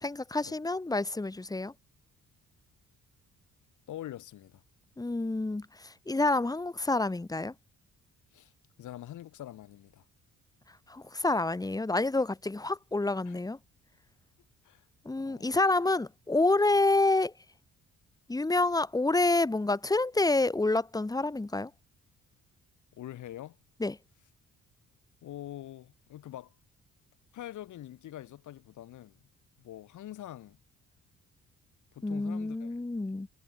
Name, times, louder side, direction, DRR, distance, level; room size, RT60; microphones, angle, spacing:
voice 1, 0.0-1.7 5.0-7.5 10.9-13.6 15.1-17.3 18.3-21.7 23.8-24.0 32.0-33.3, left 2 dB, 10° left, 1.6 m, -28 dB
voice 2, 3.9-4.6 8.3-8.5 8.8-10.0 13.3-13.4 14.6-14.8 15.2-15.5 23.0-23.6 25.2-26.5 27.3-29.2 29.6-30.6 31.9-32.7, left 13 dB, 80° left, 4.9 m, -44 dB
cardioid pair, 90°, 30 cm